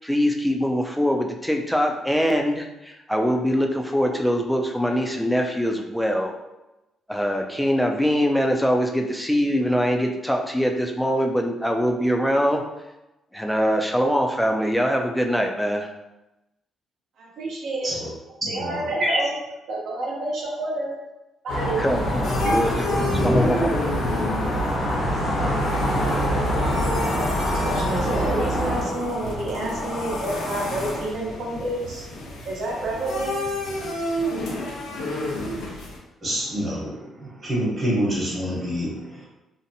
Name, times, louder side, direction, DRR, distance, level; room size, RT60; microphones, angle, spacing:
voice 1, 0.0-6.3 7.1-12.6 13.3-15.9 21.8-23.7, equal, ahead, 2 dB, 0.4 m, -23 dB
voice 2, 17.2-17.9 18.5-19.3 19.7-20.9 21.4-22.1 22.4-22.5 27.5-32.0 32.4-33.3, right 2 dB, 70° right, -3 dB, 0.8 m, -29 dB
voice 3, 18.4-19.2 36.2-39.3, equal, 35° right, -5 dB, 1.1 m, -26 dB
sound 1, 21.5-28.8, equal, 65° left, 1.0 m, -24 dB
sound 2, 21.9-36.0, left 1 dB, 80° left, 0.5 m, -30 dB
2.6 x 2.1 x 2.7 m, 0.97 s
cardioid pair, 90°, 0 cm